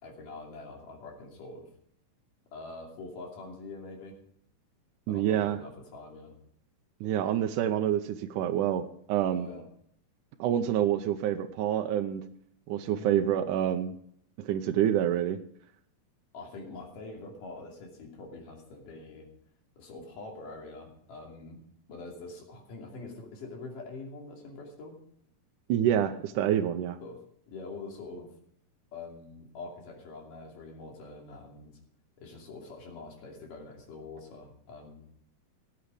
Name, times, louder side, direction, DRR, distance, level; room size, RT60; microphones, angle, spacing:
voice 1, 0.0-1.7 2.5-4.2 5.1-6.3 9.3-9.6 12.9-13.3 16.3-19.3 19.8-21.6 21.9-25.0 27.0-27.2 27.5-28.3 28.9-31.8 32.2-35.1, left 3 dB, 85° left, 0 dB, 4.3 m, -44 dB
voice 2, 5.1-5.6 7.0-9.5 10.4-12.3 12.7-13.9 14.4-15.4 25.7-27.0, right 10 dB, 80° right, 6 dB, 2.2 m, -27 dB
18.0 x 8.2 x 5.0 m, 0.66 s
omnidirectional pair, 3.7 m